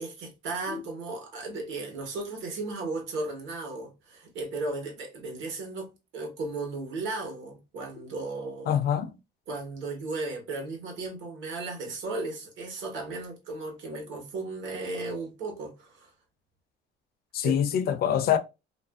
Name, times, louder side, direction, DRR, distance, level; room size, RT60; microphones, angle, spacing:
voice 1, 0.0-8.7 9.5-16.1 17.4-17.6, right 3 dB, 70° right, 1.1 m, -35 dB
voice 2, 8.7-9.1 17.3-18.4, left 9 dB, 50° left, 0.4 m, -25 dB
2.6 x 2.5 x 2.3 m
cardioid pair, 160°, 20 cm